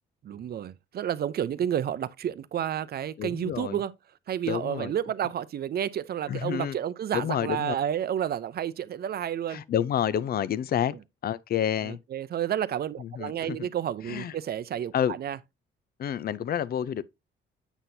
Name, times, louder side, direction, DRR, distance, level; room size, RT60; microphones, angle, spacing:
voice 1, 0.2-3.9 4.3-9.6 11.8-15.4, right 10 dB, 50° right, 0.6 m, -30 dB
voice 2, 3.2-3.8 4.5-4.9 6.3-6.8 7.1-7.7 9.5-11.0 11.2-12.0 13.0-13.6 14.1-14.3 14.9-15.2 16.0-17.0, left 9 dB, 50° left, 0.5 m, -29 dB
8.1 x 5.8 x 2.7 m
cardioid pair, 90°, 20 cm